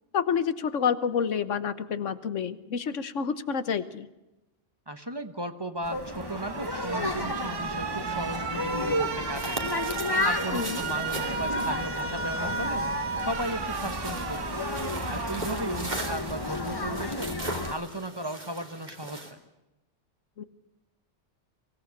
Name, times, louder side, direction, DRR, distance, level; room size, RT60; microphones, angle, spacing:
voice 1, 0.1-4.1 10.5-10.8 20.4-20.5, left 7 dB, 85° left, 13 dB, 1.4 m, -28 dB
voice 2, 4.9-9.7 10.2-12.9 13.2-14.7 15.1-17.3 17.7-19.4, right 1 dB, 20° right, 9 dB, 1.1 m, -36 dB
sound 1, 5.8-17.7, left 2 dB, 20° left, 1.3 m, -32 dB
Alarm, 6.0-17.0, right 5 dB, 80° right, 1.5 m, -35 dB
sound 2, 9.3-19.3, right 2 dB, 35° right, 2.8 m, -40 dB
24.0 x 17.5 x 8.2 m, 0.98 s
omnidirectional pair, 1.2 m